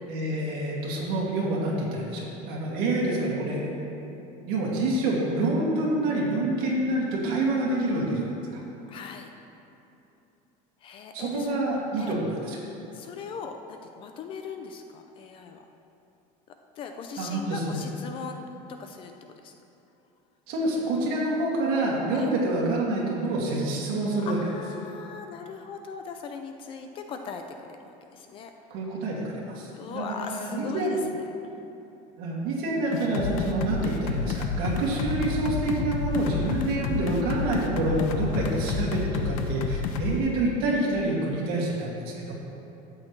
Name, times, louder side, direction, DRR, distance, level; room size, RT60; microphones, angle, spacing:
voice 1, 0.1-3.7 4.4-8.2 8.5-8.6 11.1-12.6 17.2-17.8 20.5-24.4 28.7-31.0 32.2-42.3, right 2 dB, 55° right, -4 dB, 2.4 m, -27 dB
voice 2, 8.9-9.3 10.8-11.6 12.0-12.1 12.9-15.6 16.8-19.5 22.1-22.3 24.3-28.5 29.7-31.0 31.5-31.7 33.7-33.8, left 5 dB, 30° left, 5 dB, 0.4 m, -39 dB
sound 1, 32.9-40.2, left 5 dB, 80° left, 0.8 m, -29 dB
12.5 x 8.4 x 3.2 m, 2.9 s
cardioid pair, 175°, 18 cm